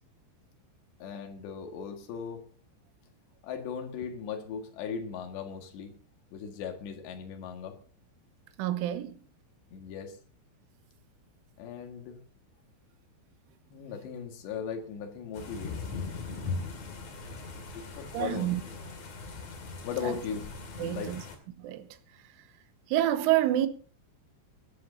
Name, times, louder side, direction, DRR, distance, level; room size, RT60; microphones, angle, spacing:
voice 1, 1.0-2.5 3.4-6.0 6.3-7.8 9.7-10.2 11.6-12.2 13.7-16.0 17.7-18.7 19.8-20.4 20.8-21.2, left 7 dB, 65° left, 3.8 m, -38 dB
voice 2, 8.6-9.2 18.1-18.6 20.0-20.1 20.8-21.2 21.6-21.9 22.9-23.7, right 13 dB, 80° right, 3.4 m, -27 dB
sound 1, 15.3-21.4, left 4 dB, 45° left, 2.8 m, -39 dB
23.5 x 11.5 x 2.8 m
omnidirectional pair, 5.8 m